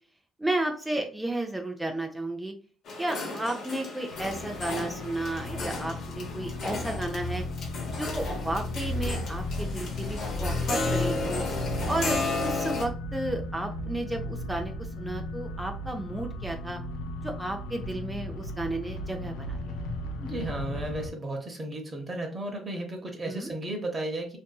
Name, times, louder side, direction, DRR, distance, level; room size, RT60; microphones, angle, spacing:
voice 1, 0.4-2.5 3.0-7.4 8.0-11.4 11.9-16.8 17.2-19.7 23.2-23.5, right 1 dB, 10° right, 3 dB, 0.4 m, -33 dB
sound 1, 2.9-12.8, left 2 dB, 65° left, 0.7 m, -34 dB
sound 2, 4.1-21.1, left 2 dB, 90° left, 0.4 m, -35 dB
voice 2, 20.2-24.4, right 1 dB, 30° right, 1 dB, 0.8 m, -34 dB
2.6 x 2.5 x 2.2 m, 0.42 s
supercardioid pair, 75°, 0 cm